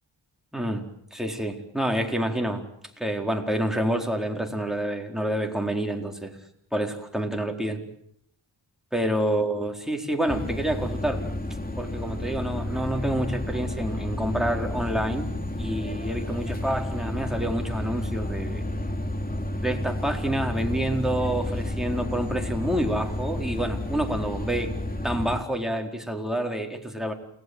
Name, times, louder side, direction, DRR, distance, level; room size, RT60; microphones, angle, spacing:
voice 1, 0.5-2.6 3.0-6.4 6.7-7.8 8.9-11.2 11.8-18.7 19.6-24.7 25.0-27.1, right 1 dB, ahead, 2 dB, 4.4 m, -28 dB
sound 1, 10.3-25.4, left 1 dB, 20° left, 3.0 m, -31 dB
29.0 x 20.0 x 8.1 m, 0.70 s
wide cardioid pair, 55°, 47 cm